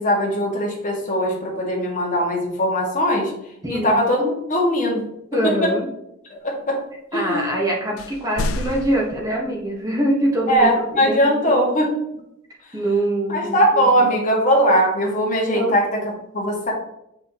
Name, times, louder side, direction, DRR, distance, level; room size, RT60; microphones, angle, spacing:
voice 1, 0.0-3.3 3.7-5.0 5.4-5.7 6.3-6.8 7.1-7.4 10.5-11.9 13.3-16.7, equal, 40° left, -2 dB, 2.1 m, -20 dB
voice 2, 3.6-4.0 5.3-5.9 7.1-11.7 12.7-14.2 15.5-15.7, right 1 dB, 15° right, -2 dB, 1.5 m, -24 dB
sound 1, 8.0-9.6 10.5-10.6, left 2 dB, 80° left, 0.5 m, -29 dB
7.5 x 5.9 x 3.1 m, 0.78 s
head